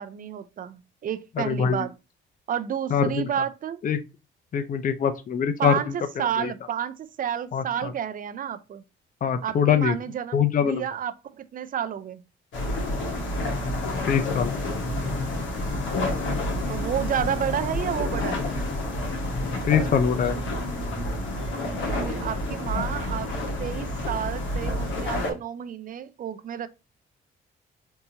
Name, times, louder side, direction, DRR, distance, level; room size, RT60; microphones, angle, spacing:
voice 1, 0.0-1.9 2.5-3.8 5.6-8.8 9.4-12.2 16.7-18.5 21.9-23.3 23.6-26.7, right 9 dB, 45° right, 0.4 m, -31 dB
voice 2, 1.4-1.9 2.9-3.3 3.8-4.0 4.5-5.9 6.4-6.5 7.5-7.9 9.2-9.9 10.3-10.8 14.1-14.5 19.4-20.4, left 7 dB, 45° left, 0.5 m, -23 dB
sound 1, 12.5-25.3, left 1 dB, 75° left, 1.3 m, -29 dB
3.5 x 2.7 x 2.8 m
cardioid pair, 90°, 20 cm